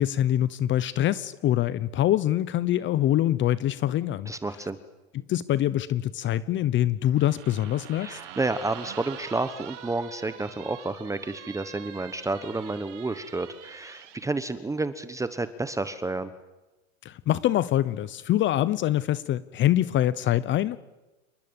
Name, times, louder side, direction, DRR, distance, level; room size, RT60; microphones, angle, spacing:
voice 1, 0.0-4.3 5.1-8.2 17.0-20.8, left 12 dB, 30° left, 17 dB, 0.9 m, -24 dB
voice 2, 4.3-4.8 8.0-16.3, right 2 dB, 10° right, 12 dB, 1.1 m, -30 dB
sound 1, 7.2-14.2, right 10 dB, 80° right, 4.4 m, -44 dB
28.5 x 20.5 x 8.9 m, 1.1 s
supercardioid pair, 130°, 36 cm